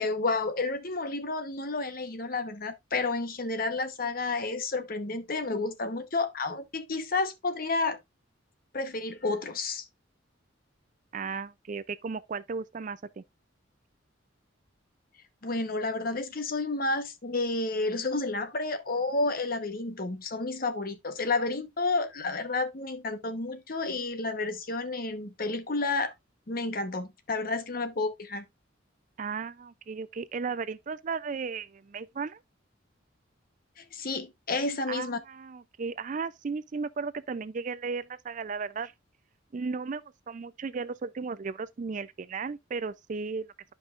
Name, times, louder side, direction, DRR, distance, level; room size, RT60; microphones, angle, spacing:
voice 1, 0.0-8.0 8.7-9.8 15.4-26.1 26.5-28.4 33.8-35.2, left 3 dB, 45° left, 1.0 m, -31 dB
voice 2, 11.1-13.2 29.2-32.4 34.9-38.9 39.5-43.7, right 5 dB, 40° right, 0.4 m, -35 dB
11.5 x 5.3 x 2.4 m
head